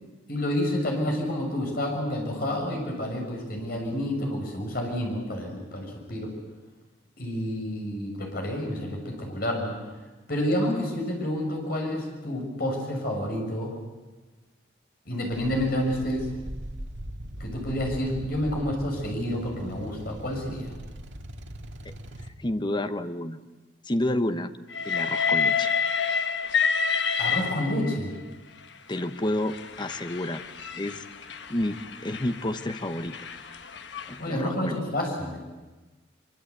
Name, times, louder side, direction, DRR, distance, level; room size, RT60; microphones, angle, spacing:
voice 1, 0.3-6.3 7.2-9.7 10.3-13.7 15.0-16.3 17.4-20.7 27.2-28.1 34.2-35.4, left 1 dB, 55° left, 1 dB, 6.7 m, -29 dB
sound 1, 15.3-22.3, equal, 85° right, 2.1 m, -40 dB
voice 2, 22.4-23.4 23.8-24.5 24.8-25.7 28.9-30.4 30.8-31.0 31.5-33.2 34.1-34.8, left 1 dB, 25° left, 10 dB, 1.0 m, -30 dB
Train, 24.7-28.1 29.0-34.2, left 6 dB, 80° left, 1.3 m, -29 dB
24.5 x 23.5 x 8.4 m, 1.2 s
head